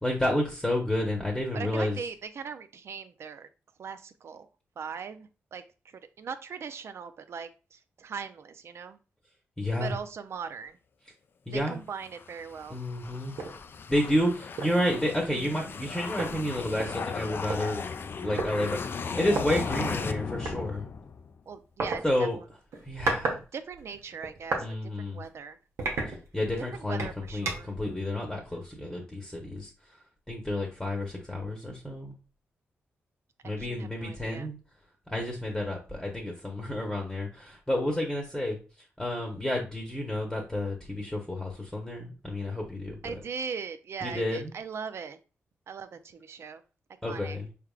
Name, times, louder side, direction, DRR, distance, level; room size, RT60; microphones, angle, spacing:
voice 1, 0.0-2.0 9.6-9.9 11.5-11.8 12.7-13.4 13.9-17.8 18.2-20.8 22.0-22.4 22.8-23.4 24.6-25.2 26.1-29.7 30.3-32.1 33.4-34.6 35.1-38.6 39.0-43.2 44.0-44.5 47.0-47.5, left 1 dB, 10° left, 0 dB, 1.0 m, -30 dB
voice 2, 1.5-3.5 3.8-4.5 4.8-9.0 9.8-10.8 11.5-12.8 19.0-19.1 21.5-22.4 23.5-25.6 26.7-27.7 28.5-28.7 33.6-34.5 43.0-45.2 45.7-46.6 47.1-47.4, right 6 dB, 65° right, 11 dB, 0.5 m, -40 dB
sound 1, 12.0-21.4, left 5 dB, 50° left, 0.4 m, -36 dB
sonidos madera, 13.4-13.6 14.0-14.2 14.6-14.9 15.8-15.9 16.2-17.6 18.4-18.5 19.3-19.5 20.5-20.6 21.8-22.0 22.7-23.4 23.7-24.7 25.1-25.3 25.8-26.6 27.0-27.8, right 3 dB, 80° right, 1.0 m, -32 dB
4.7 x 3.5 x 2.4 m, 0.33 s
cardioid pair, 80°, 5 cm